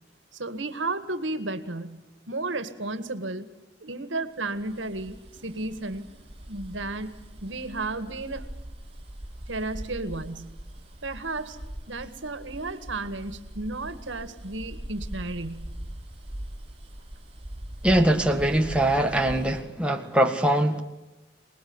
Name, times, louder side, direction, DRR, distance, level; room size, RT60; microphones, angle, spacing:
voice 1, 0.3-3.5 3.8-6.1 6.4-7.1 7.4-8.5 9.5-10.5 11.0-11.6 11.9-15.7, right 2 dB, 90° right, 12 dB, 1.9 m, -33 dB
Bus, 4.5-19.6, right 1 dB, 30° right, 2.9 m, -41 dB
voice 2, 17.8-20.8, right 1 dB, 5° right, 3 dB, 1.8 m, -22 dB
25.5 x 20.5 x 9.7 m, 1.0 s
head